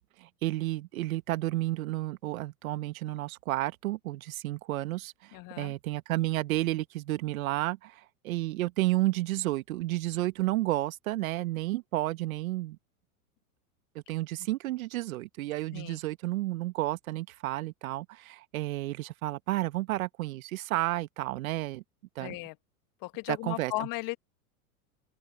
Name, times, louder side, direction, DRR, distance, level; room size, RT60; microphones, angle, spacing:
voice 1, 0.0-7.9 8.2-12.8 14.1-21.8 22.2-22.4 23.3-23.7, right 17 dB, 65° right, 1.8 m, -31 dB
voice 2, 5.3-5.7 15.7-16.0 22.2-22.5 23.0-24.2, left 23 dB, 45° left, 1.6 m, -36 dB
open air
hypercardioid pair, 90°, 44 cm